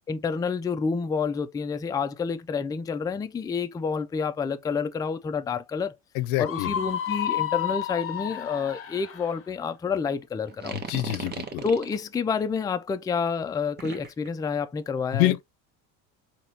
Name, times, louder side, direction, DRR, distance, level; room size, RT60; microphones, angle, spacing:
voice 1, 0.1-5.9 6.4-10.8 11.6-15.4, left 5 dB, 10° left, 0.3 m, -29 dB
voice 2, 6.1-6.8 10.7-11.6 15.1-15.4, left 17 dB, 90° left, 0.6 m, -26 dB
Screaming, 6.4-9.4, left 10 dB, 35° left, 1.0 m, -30 dB
sound 1, 10.5-12.0 13.8-14.3, right 5 dB, 25° right, 0.9 m, -36 dB
4.1 x 2.9 x 2.7 m
supercardioid pair, 100°, 38 cm